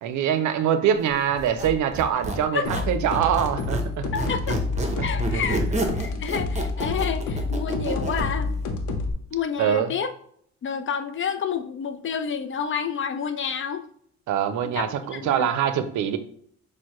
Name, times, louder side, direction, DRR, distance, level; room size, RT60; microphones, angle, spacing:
voice 1, 0.0-4.3 4.9-5.4 9.6-9.9 14.3-16.2, right 9 dB, 75° right, 10 dB, 0.5 m, -24 dB
Squeak, 1.4-3.9 4.2-8.3, right 2 dB, 25° right, 0.8 m, -30 dB
voice 2, 2.5-2.8 4.1-4.5 5.0-8.5 9.3-10.1 10.6-13.8 14.8-15.5, left 7 dB, 40° left, 9 dB, 0.5 m, -29 dB
sound 1, 2.6-9.1, left 3 dB, 80° left, 0.7 m, -28 dB
6.2 x 2.2 x 3.0 m, 0.64 s
cardioid pair, 90°, 30 cm